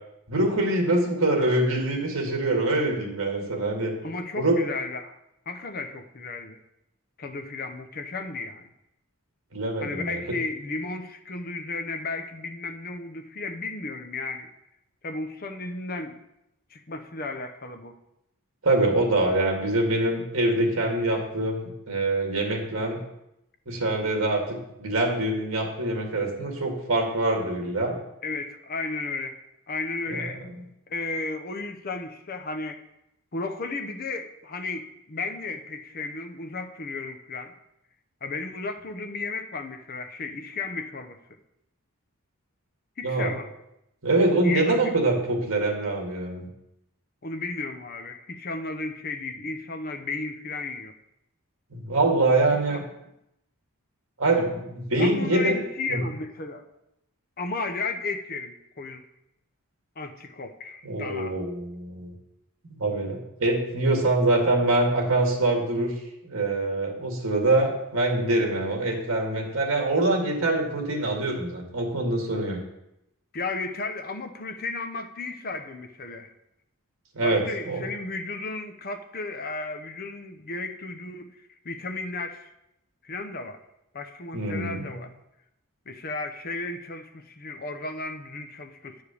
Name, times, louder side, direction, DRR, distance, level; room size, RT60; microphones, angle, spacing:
voice 1, 0.3-3.9 4.4-4.6 9.5-10.4 18.6-23.0 23.7-28.0 30.1-30.5 43.0-43.4 44.0-46.5 51.7-52.8 54.2-55.6 55.9-56.0 60.8-62.1 62.6-65.9 66.2-72.6 77.1-77.8 84.3-84.9, right 2 dB, 60° right, 1 dB, 2.0 m, -24 dB
voice 2, 4.0-5.2 5.5-6.6 7.2-8.7 9.8-14.5 15.0-16.2 16.7-18.0 28.2-29.4 29.7-30.4 30.9-32.8 33.3-37.5 38.2-41.2 43.0-43.5 44.4-44.9 47.2-50.9 52.7-52.8 55.0-56.6 57.4-59.0 60.0-61.4 73.3-76.3 77.2-81.4 81.6-82.5 83.0-83.6 83.9-85.1 85.9-89.0, left 3 dB, 40° left, 7 dB, 0.7 m, -34 dB
9.4 x 4.9 x 6.9 m, 0.86 s
head